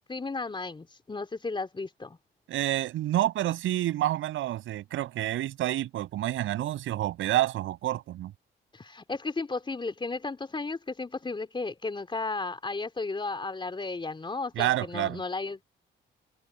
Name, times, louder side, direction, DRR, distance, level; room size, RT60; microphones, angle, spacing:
voice 1, 0.0-2.2 8.7-15.6, left 3 dB, 25° left, 3.7 m, -34 dB
voice 2, 2.5-8.3 14.6-15.2, right 14 dB, 85° right, 7.3 m, -28 dB
cardioid pair, 90°, 20 cm